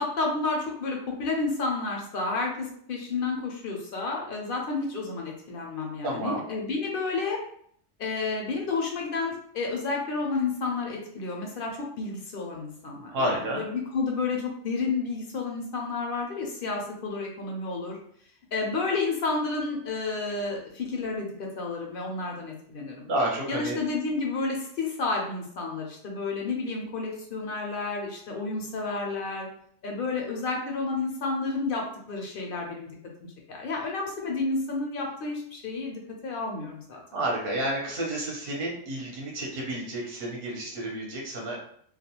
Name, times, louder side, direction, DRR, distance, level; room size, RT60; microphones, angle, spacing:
voice 1, 0.0-7.4 8.0-18.0 18.5-23.1 23.5-29.5 29.8-32.9 33.5-37.0, left 3 dB, 60° left, 0 dB, 0.7 m, -31 dB
voice 2, 6.0-6.5 13.1-13.6 23.0-23.8 37.1-41.6, right 1 dB, 55° right, -2 dB, 0.9 m, -30 dB
2.3 x 2.2 x 2.8 m, 0.64 s
omnidirectional pair, 1.2 m